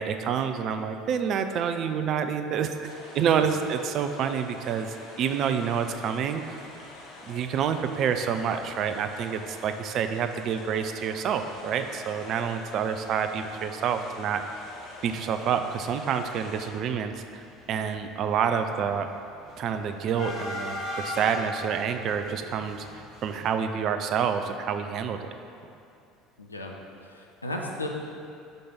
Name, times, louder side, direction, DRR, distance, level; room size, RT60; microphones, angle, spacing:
voice 1, 0.0-6.6 7.3-14.4 15.0-19.1 19.6-25.3, right 7 dB, 45° right, 8 dB, 0.4 m, -28 dB
sound 1, 2.8-16.7, left 1 dB, 55° left, 1.2 m, -46 dB
Shuttle-Train-Passing, 7.5-7.7 8.2-8.3 8.4-8.6 9.4-9.5 9.9-10.1 10.4-10.5 10.9-13.1 13.3-14.1 14.3-23.4, left 1 dB, 40° left, 1.4 m, -40 dB
voice 2, 26.4-26.8 27.0-27.9, left 1 dB, 85° left, 0 dB, 0.6 m, -35 dB
5.2 x 5.0 x 5.8 m, 2.5 s
figure-of-eight pair, 65°, 0 cm